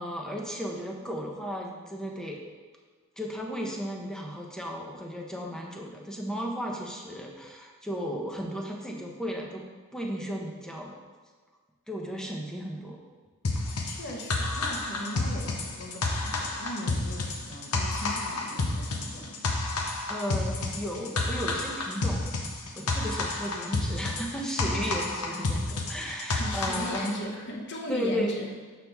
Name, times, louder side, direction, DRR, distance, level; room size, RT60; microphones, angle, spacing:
voice 1, 0.0-2.4 3.2-9.6 9.9-10.9 11.9-13.0 19.6-22.3 22.8-27.1 27.9-28.4, equal, 5° left, 0 dB, 0.8 m, -35 dB
sound 1, 13.4-27.1, left 2 dB, 90° left, 0.8 m, -30 dB
voice 2, 13.8-19.4 26.4-28.5, equal, 55° left, -1 dB, 1.1 m, -38 dB
6.6 x 5.8 x 3.5 m, 1.5 s
head